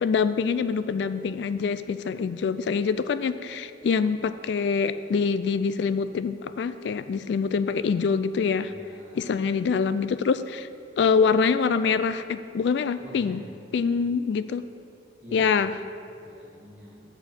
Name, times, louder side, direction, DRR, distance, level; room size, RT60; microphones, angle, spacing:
voice 1, 0.0-8.7 9.2-10.7 11.0-13.4 13.7-14.6 15.3-15.7, left 5 dB, 70° left, 13 dB, 0.3 m, -25 dB
voice 2, 8.6-9.3 13.0-13.6 15.2-15.6 16.2-17.0, equal, 10° right, -5 dB, 1.8 m, -46 dB
10.5 x 4.4 x 7.8 m, 2.4 s
head